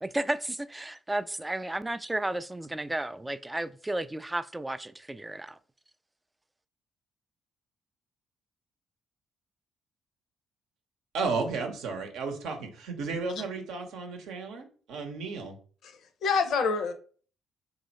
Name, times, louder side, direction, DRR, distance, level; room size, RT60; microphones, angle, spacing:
voice 1, 0.0-5.6, right 1 dB, 15° right, 0.3 m, -33 dB
voice 2, 11.1-15.6, right 4 dB, 70° right, 0.7 m, -33 dB
voice 3, 15.8-16.9, left 5 dB, 60° left, 0.6 m, -27 dB
3.0 x 2.7 x 4.0 m
hypercardioid pair, 45°, 0 cm